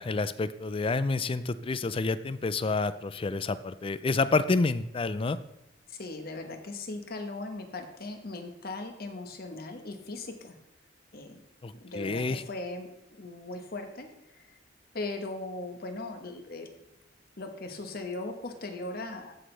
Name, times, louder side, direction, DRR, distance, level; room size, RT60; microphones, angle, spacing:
voice 1, 0.0-5.4 11.6-12.4, left 3 dB, 30° left, 14 dB, 0.4 m, -29 dB
voice 2, 5.9-10.6 11.1-11.4 11.8-14.5 14.9-16.8 17.4-19.3, left 2 dB, 55° left, 5 dB, 1.3 m, -39 dB
15.0 x 6.2 x 3.3 m, 0.88 s
head